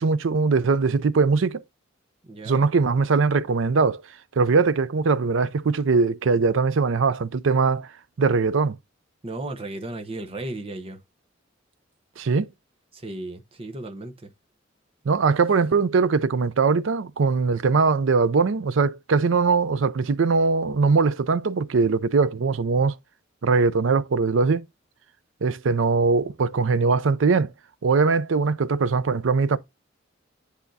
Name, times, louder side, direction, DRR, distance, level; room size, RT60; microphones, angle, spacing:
voice 1, 0.0-1.6 2.5-4.0 4.4-7.9 8.2-8.8 12.2-12.5 15.1-22.9 23.4-24.6 25.4-27.5 27.8-29.6, right 4 dB, 75° right, 0.5 m, -21 dB
voice 2, 2.2-2.7 9.2-11.0 12.9-14.3, right 2 dB, 30° right, 0.9 m, -35 dB
10.0 x 3.5 x 2.7 m
head